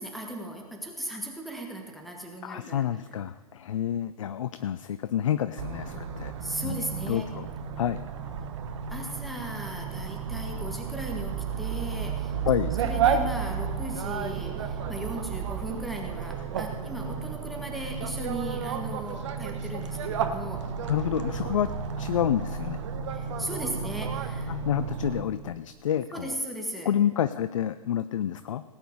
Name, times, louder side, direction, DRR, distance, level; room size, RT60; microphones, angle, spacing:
voice 1, 0.0-2.8 6.4-7.3 8.9-12.4 12.8-20.6 23.1-24.6 26.1-26.9, right 1 dB, ahead, 0 dB, 1.6 m, -37 dB
voice 2, 2.4-6.3 6.6-6.8 7.1-7.5 7.8-8.0 12.5-12.7 20.9-21.7 22.0-22.8 24.5-26.3 26.8-28.6, left 10 dB, 60° left, 13 dB, 0.5 m, -28 dB
sound 1, 5.6-25.2, right 6 dB, 50° right, 1.2 m, -32 dB
18.0 x 9.1 x 4.8 m, 1.5 s
figure-of-eight pair, 110°, 19 cm